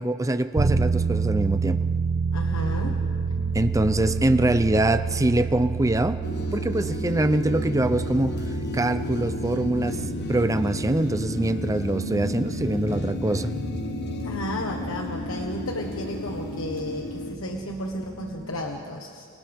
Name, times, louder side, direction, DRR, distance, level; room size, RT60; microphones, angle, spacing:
voice 1, 0.0-1.8 3.5-6.2 6.5-8.4 8.7-10.0 10.3-13.5, right 1 dB, 15° right, 11 dB, 0.6 m, -24 dB
sound 1, 0.6-16.9, right 5 dB, 55° right, 0.7 m, -30 dB
voice 2, 2.3-3.0 14.2-19.3, left 1 dB, 90° left, 1 dB, 1.4 m, -33 dB
sound 2, 2.4-18.6, equal, 80° right, 3.7 m, -38 dB
sound 3, 6.2-17.4, left 2 dB, 55° left, 1.2 m, -33 dB
30.0 x 29.5 x 3.6 m, 2.2 s
head